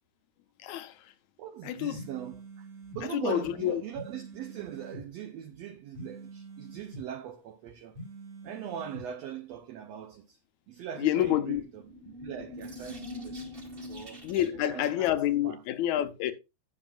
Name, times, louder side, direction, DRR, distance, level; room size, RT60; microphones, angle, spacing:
voice 1, 0.6-0.9 1.6-2.0 3.1-3.8 11.0-11.6 14.2-16.3, left 12 dB, 70° left, 2.0 m, -28 dB
voice 2, 1.4-8.0 8.4-10.4 10.7-14.2 14.5-15.1 15.4-15.6, right 10 dB, 75° right, 1.5 m, -41 dB
sound 1, 1.9-3.0 3.9-5.0 5.9-7.0 7.9-9.0, right 2 dB, 45° right, 2.8 m, -45 dB
sound 2, 11.6-14.8, left 1 dB, 20° right, 1.7 m, -43 dB
16.5 x 6.0 x 2.4 m
omnidirectional pair, 3.7 m